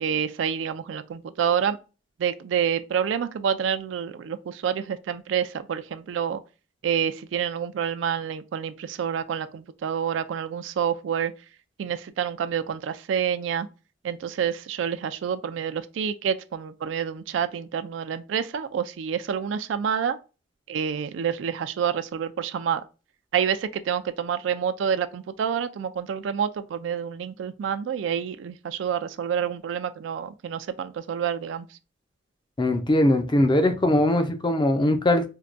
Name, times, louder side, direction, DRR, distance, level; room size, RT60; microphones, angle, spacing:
voice 1, 0.0-1.8 2.2-6.4 6.8-11.3 11.8-13.7 14.0-20.2 20.7-22.8 23.3-31.7, right 8 dB, 80° right, 0.3 m, -28 dB
voice 2, 32.6-35.3, left 1 dB, 25° left, 0.5 m, -21 dB
4.5 x 2.2 x 2.5 m
head